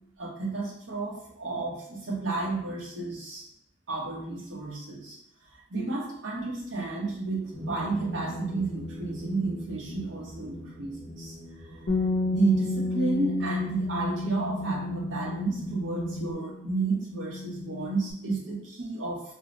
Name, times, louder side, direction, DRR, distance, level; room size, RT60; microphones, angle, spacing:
voice 1, 0.2-3.4 3.9-5.2 5.7-11.3 11.6-11.8 12.3-19.2, right 3 dB, 80° right, -3 dB, 1.0 m, -31 dB
sound 1, 7.5-16.3, right 1 dB, 10° right, 0.6 m, -41 dB
Bass guitar, 11.9-18.1, left 2 dB, 65° left, 0.6 m, -32 dB
2.9 x 2.0 x 3.8 m, 0.78 s
head